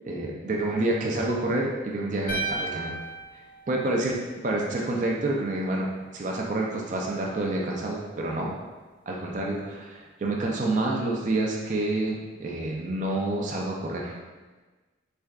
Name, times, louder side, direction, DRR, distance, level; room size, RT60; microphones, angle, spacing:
voice 1, 0.0-2.9 3.3-3.4 3.7-4.2 4.4-5.9 6.1-8.5 9.1-14.1, right 2 dB, 40° right, -1 dB, 0.4 m, -28 dB
sound 1, 2.3-4.5, right 3 dB, 45° left, 0.5 m, -34 dB
3.6 x 3.3 x 2.3 m, 1.3 s
head